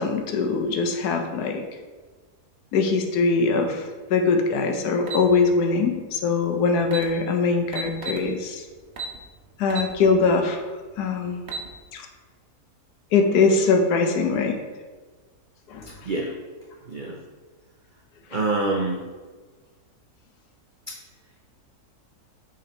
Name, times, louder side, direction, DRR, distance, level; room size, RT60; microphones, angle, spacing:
voice 1, 0.0-1.6 2.7-8.6 9.6-10.6 11.0-11.4 11.9-12.1 13.1-14.6 15.7-15.9 18.3-18.4, left 4 dB, 80° left, 4 dB, 1.3 m, -22 dB
sound 1, 5.1-5.3 6.5-6.6 6.8-7.1 7.7-8.2 9.0-9.2 9.7-9.9 10.4-10.5 11.3-11.7, right 4 dB, 50° right, 1.0 m, -32 dB
voice 2, 18.3-19.0 20.9-21.0, right 2 dB, 80° right, 0 dB, 0.4 m, -25 dB
6.6 x 3.9 x 4.4 m, 1.4 s
omnidirectional pair, 1.7 m